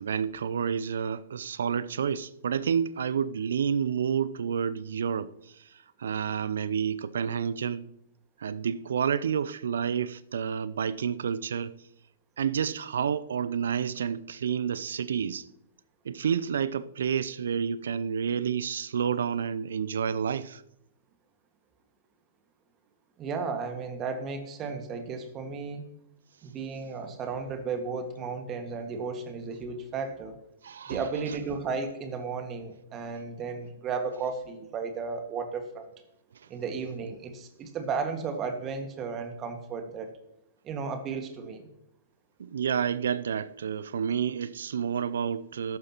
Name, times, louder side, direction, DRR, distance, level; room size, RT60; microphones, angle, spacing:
voice 1, 0.0-7.9 8.4-11.7 12.4-15.5 16.0-20.6 30.6-31.4 42.4-45.8, right 7 dB, 65° right, 0.5 m, -29 dB
voice 2, 23.2-25.8 26.4-30.3 30.9-35.9 36.5-40.2 40.6-41.7, right 5 dB, 30° right, 1.7 m, -34 dB
14.0 x 11.0 x 3.0 m
figure-of-eight pair, 110°, 0 cm